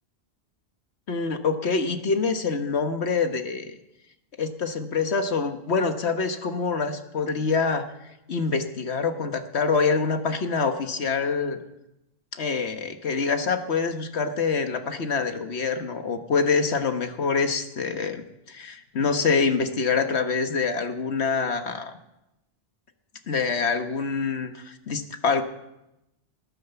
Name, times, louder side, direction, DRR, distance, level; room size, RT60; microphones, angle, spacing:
voice 1, 1.1-3.7 4.4-7.8 8.3-11.6 12.3-18.2 18.5-21.9 23.3-25.4, left 5 dB, 85° left, 8 dB, 1.5 m, -25 dB
19.0 x 10.0 x 6.9 m, 0.90 s
omnidirectional pair, 1.1 m